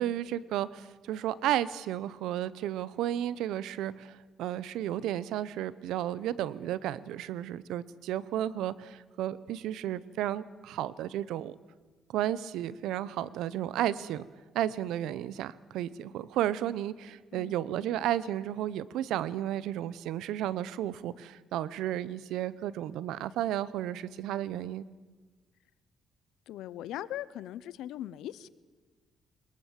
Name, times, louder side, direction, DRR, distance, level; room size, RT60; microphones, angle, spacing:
voice 1, 0.0-11.6 12.1-14.3 14.5-24.8, right 12 dB, 90° right, 19 dB, 0.8 m, -33 dB
voice 2, 26.5-28.5, left 12 dB, 85° left, 18 dB, 0.8 m, -39 dB
21.5 x 21.0 x 7.4 m, 1.3 s
cardioid pair, 90°, 0 cm